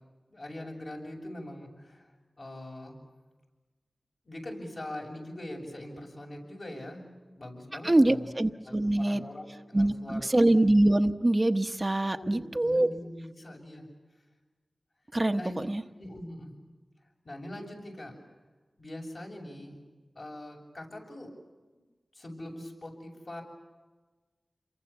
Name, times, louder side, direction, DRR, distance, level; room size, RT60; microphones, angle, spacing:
voice 1, 0.3-2.1 2.4-2.9 4.3-8.3 8.6-10.6 12.1-13.9 15.4-15.6 16.0-16.5 17.3-18.1 18.8-19.8 20.2-21.3 22.1-23.4, left 1 dB, 60° left, 0 dB, 7.1 m, -42 dB
voice 2, 7.8-9.2 9.7-12.9 15.1-15.8, right 1 dB, 30° right, 6 dB, 1.0 m, -24 dB
28.0 x 23.0 x 7.1 m, 1.3 s
wide cardioid pair, 55°, 0 cm